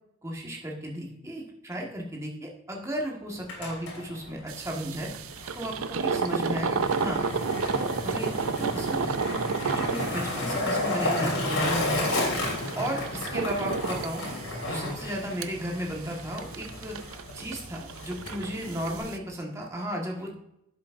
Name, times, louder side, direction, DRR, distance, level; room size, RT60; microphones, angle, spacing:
voice 1, 0.2-5.1 5.6-7.2 7.7-9.2 9.7-12.2 12.7-14.2 14.7-17.0 17.3-20.3, equal, 15° right, -1 dB, 1.4 m, -34 dB
Skateboard, 3.3-19.0, left 1 dB, 80° left, 3.1 m, -33 dB
sound 1, 4.5-19.2, right 5 dB, 75° right, 0.5 m, -32 dB
11.5 x 7.4 x 2.5 m, 0.82 s
head